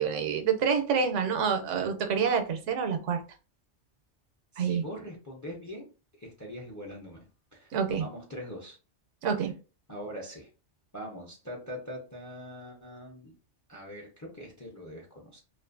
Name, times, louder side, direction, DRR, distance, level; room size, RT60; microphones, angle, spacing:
voice 1, 0.0-3.2 4.6-4.8 7.7-8.0 9.2-9.5, right 6 dB, 85° right, 6 dB, 0.9 m, -27 dB
voice 2, 4.5-5.9 6.2-7.7 8.0-8.8 9.9-10.5 10.9-13.3 13.7-15.4, equal, 30° left, 0 dB, 0.3 m, -42 dB
2.5 x 2.4 x 2.4 m, 0.33 s
omnidirectional pair, 1.2 m